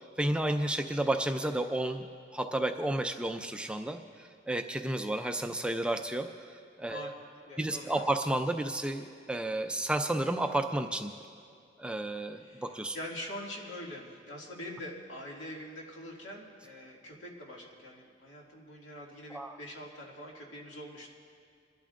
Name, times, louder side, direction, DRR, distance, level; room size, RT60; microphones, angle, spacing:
voice 1, 0.2-2.1 2.3-7.1 7.6-11.1 11.8-13.0 19.3-19.6, right 1 dB, 5° right, 6 dB, 0.4 m, -32 dB
voice 2, 7.5-8.0 12.4-21.1, left 1 dB, 75° left, -2 dB, 2.3 m, -44 dB
27.0 x 12.0 x 2.5 m, 2.3 s
head